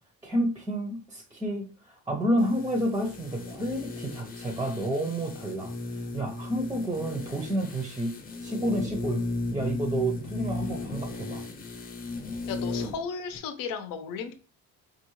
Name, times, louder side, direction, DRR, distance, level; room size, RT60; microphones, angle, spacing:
voice 1, 0.2-8.2 8.4-9.2 9.5-11.4, right 1 dB, 10° right, 4 dB, 0.5 m, -30 dB
sound 1, 2.4-13.0 13.3-13.4, left 2 dB, 25° left, 0.7 m, -35 dB
voice 2, 12.5-14.3, left 6 dB, 85° left, 8 dB, 0.8 m, -34 dB
4.6 x 2.4 x 3.0 m, 0.35 s
cardioid pair, 150°, 33 cm